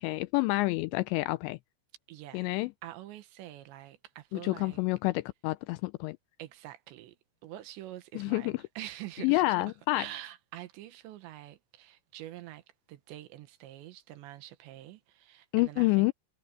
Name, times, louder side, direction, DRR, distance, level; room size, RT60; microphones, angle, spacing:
voice 1, 0.0-1.6 2.3-2.7 4.3-6.2 8.2-8.5 9.2-10.1 15.5-16.1, left 22 dB, 85° left, 2.6 m, -28 dB
voice 2, 2.1-2.5 2.8-4.8 6.4-7.2 7.4-9.6 9.9-16.1, right 14 dB, 75° right, 3.2 m, -46 dB
omnidirectional pair, 5.5 m